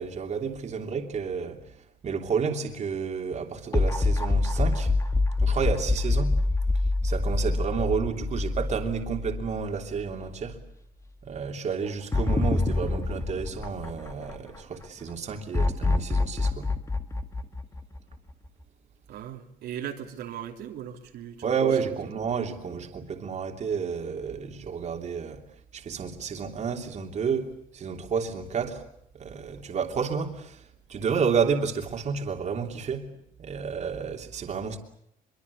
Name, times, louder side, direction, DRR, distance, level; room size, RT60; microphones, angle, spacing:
voice 1, 0.0-1.6 2.0-4.9 5.4-6.4 7.0-10.6 11.2-16.7 21.4-25.4 25.7-27.5 27.7-28.8 29.1-30.6 30.9-33.1 33.4-34.8, right 6 dB, 45° right, 3.1 m, -30 dB
sound 1, 3.7-10.1 10.4-10.5 12.1-14.6 15.5-18.3, left 2 dB, 15° left, 1.9 m, -26 dB
voice 2, 19.1-21.6, right 10 dB, 75° right, 3.2 m, -38 dB
24.5 x 23.5 x 8.4 m
cardioid pair, 110°, 17 cm